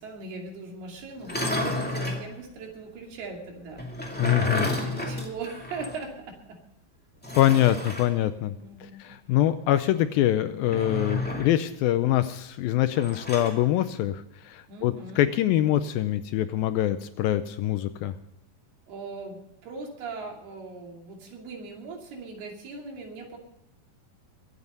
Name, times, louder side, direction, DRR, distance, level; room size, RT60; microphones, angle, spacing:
voice 1, 0.0-6.6 8.6-9.0 14.7-15.3 18.9-23.4, right 4 dB, 75° right, 1 dB, 4.6 m, -40 dB
sound 1, 1.2-2.3 3.8-6.0 6.3-6.4 7.2-8.1 10.6-11.6 12.9-13.6, left 1 dB, 5° left, 1.2 m, -31 dB
voice 2, 4.2-4.7 7.4-8.5 9.0-18.1, left 13 dB, 80° left, 11 dB, 2.2 m, -24 dB
22.5 x 8.3 x 5.3 m, 0.83 s
omnidirectional pair, 4.6 m